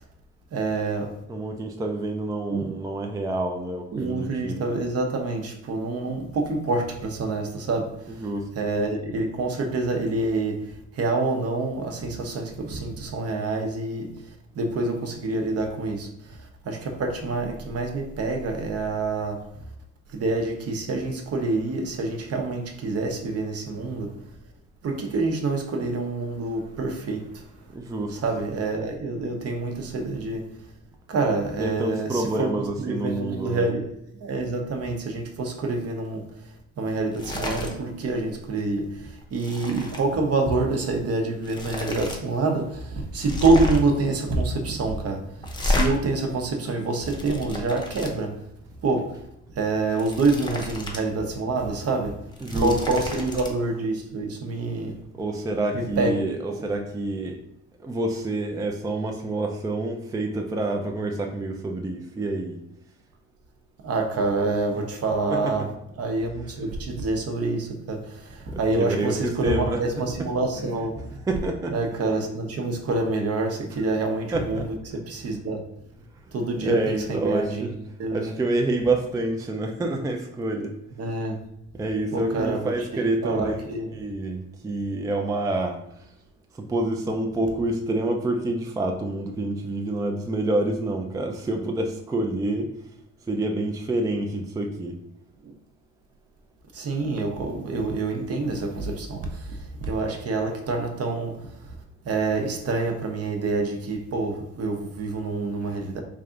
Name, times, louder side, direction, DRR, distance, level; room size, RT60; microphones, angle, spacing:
voice 1, 0.5-1.2 2.5-2.7 3.9-19.5 20.1-24.2 24.8-27.4 28.1-30.6 31.1-32.5 32.8-33.9 34.2-48.4 48.8-49.2 49.6-55.0 55.7-56.1 56.5-56.6 63.8-65.7 66.0-71.1 71.7-75.6 76.3-77.7 78.0-78.3 81.0-81.4 82.1-84.0 95.4-95.5 96.7-101.7 102.0-106.0, right 3 dB, 50° right, 0.7 m, -27 dB
voice 2, 1.3-4.6 8.2-8.5 27.7-28.2 31.6-33.7 52.4-52.7 55.1-57.4 57.8-62.6 65.3-65.5 68.5-69.8 71.3-71.7 72.0-72.2 74.3-74.7 76.6-77.7 78.1-80.8 81.7-83.6 83.9-86.1 86.5-92.8 93.3-95.0, right 2 dB, 10° right, 0.4 m, -27 dB
sound 1, 37.1-37.7 38.1-38.4 38.7-40.1 41.0-41.1 41.4-42.2 42.5-42.6 43.1-44.0 45.4-45.9 46.7-48.1 49.8-51.0 51.4-51.5 52.2-53.5, left 2 dB, 15° left, 0.7 m, -30 dB
3.3 x 2.5 x 3.7 m
cardioid pair, 90°, 30 cm